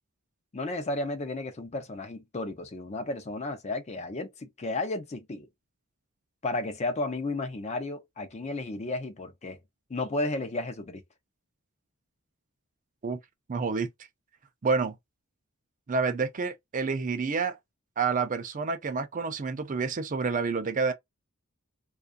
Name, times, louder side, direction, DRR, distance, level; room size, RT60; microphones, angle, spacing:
voice 1, 0.5-5.5 6.4-9.6 9.9-11.0, left 2 dB, 30° left, 0.5 m, -33 dB
voice 2, 13.5-13.9 14.6-14.9 15.9-17.6 18.0-20.9, right 4 dB, 35° right, 0.5 m, -28 dB
2.4 x 2.3 x 2.4 m
head